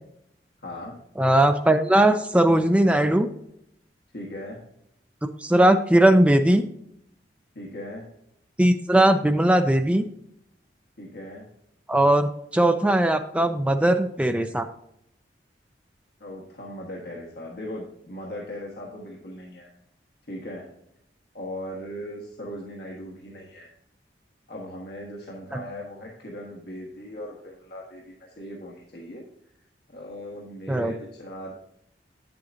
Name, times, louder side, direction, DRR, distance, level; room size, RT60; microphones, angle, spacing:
voice 1, 0.6-1.0 4.1-4.6 7.5-8.1 11.0-11.5 16.2-19.7 20.3-20.7 21.3-23.7 24.5-29.2 29.9-31.5, left 1 dB, 65° left, -3 dB, 1.5 m, -38 dB
voice 2, 1.2-3.3 5.4-6.6 8.6-10.0 11.9-14.7 30.7-30.9, right 1 dB, 5° right, 7 dB, 0.4 m, -19 dB
9.4 x 7.7 x 2.6 m, 0.75 s
head